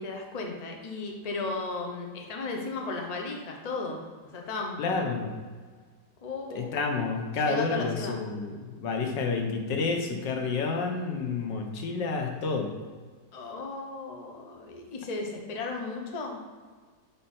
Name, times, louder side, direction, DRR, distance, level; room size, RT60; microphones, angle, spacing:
voice 1, 0.0-4.0 4.3-5.2 6.2-6.9 7.4-8.2 13.3-16.4, left 3 dB, 35° left, 1 dB, 0.7 m, -35 dB
voice 2, 4.8-5.3 6.5-12.7, left 4 dB, 85° left, 3 dB, 1.6 m, -29 dB
9.3 x 3.7 x 4.3 m, 1.5 s
omnidirectional pair, 1.9 m